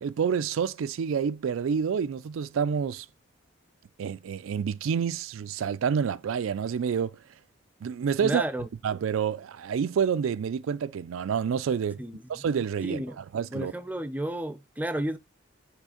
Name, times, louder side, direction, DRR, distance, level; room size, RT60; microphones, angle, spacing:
voice 1, 0.0-3.1 4.0-7.2 7.8-8.4 8.8-12.0 12.3-13.7, right 7 dB, 80° right, 0.4 m, -28 dB
voice 2, 8.2-8.7 12.0-12.4 12.8-13.2 13.5-15.2, right 1 dB, 10° right, 0.5 m, -32 dB
6.2 x 3.2 x 4.9 m
head